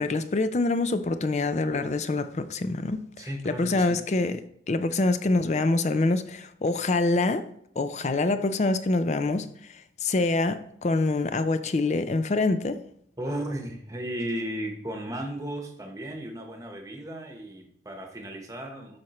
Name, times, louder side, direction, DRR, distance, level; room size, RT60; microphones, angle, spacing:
voice 1, 0.0-4.4 4.7-7.5 7.8-12.8, left 2 dB, 40° left, 0.4 m, -25 dB
voice 2, 3.2-4.0 13.2-19.0, right 1 dB, 20° right, 1.0 m, -35 dB
7.7 x 5.8 x 3.0 m
head